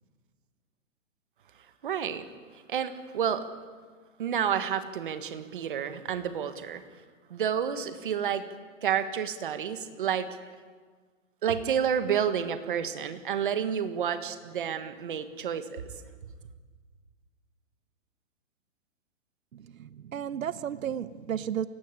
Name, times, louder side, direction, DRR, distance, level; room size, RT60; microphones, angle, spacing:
voice 1, 1.8-2.2 2.7-3.4 4.2-6.8 7.3-8.4 8.8-10.3 11.4-15.8, right 8 dB, 40° right, 10 dB, 1.6 m, -30 dB
voice 2, 19.5-21.7, right 9 dB, 90° right, 15 dB, 1.0 m, -33 dB
28.5 x 16.0 x 8.7 m, 1.5 s
hypercardioid pair, 180°, 39 cm